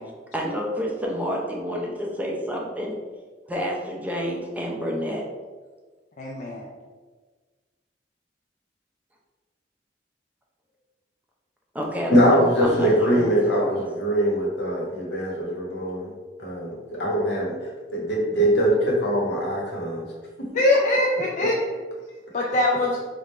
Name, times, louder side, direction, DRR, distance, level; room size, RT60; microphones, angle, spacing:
voice 1, 0.3-2.9 3.5-5.2 11.7-13.8, equal, 10° right, -2 dB, 0.6 m, -29 dB
voice 2, 6.2-6.5 20.5-21.6 22.3-23.0, left 1 dB, 45° left, -2 dB, 0.4 m, -22 dB
voice 3, 12.1-16.1 16.4-17.5 17.9-20.0, equal, 85° left, -3 dB, 1.2 m, -22 dB
3.6 x 2.5 x 4.2 m, 1.4 s
head